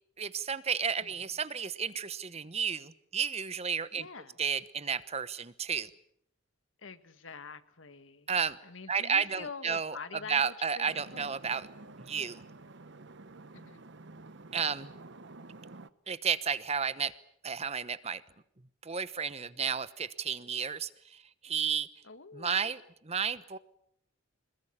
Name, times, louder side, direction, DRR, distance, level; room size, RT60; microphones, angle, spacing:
voice 1, 0.2-4.1 4.4-5.9 8.3-8.6 8.9-10.0 10.3-11.7 12.0-12.4 14.5-14.9 16.1-17.1 17.4-18.2 18.8-21.9 22.3-23.6, right 6 dB, 30° right, 15 dB, 1.0 m, -32 dB
voice 2, 3.9-4.4 6.8-8.3 8.6-10.9 11.1-11.3 13.5-13.8 22.0-22.7, left 4 dB, 70° left, 11 dB, 1.8 m, -46 dB
sound 1, 10.9-15.9, right 2 dB, 60° right, 1.0 m, -50 dB
25.5 x 21.5 x 8.7 m, 0.71 s
head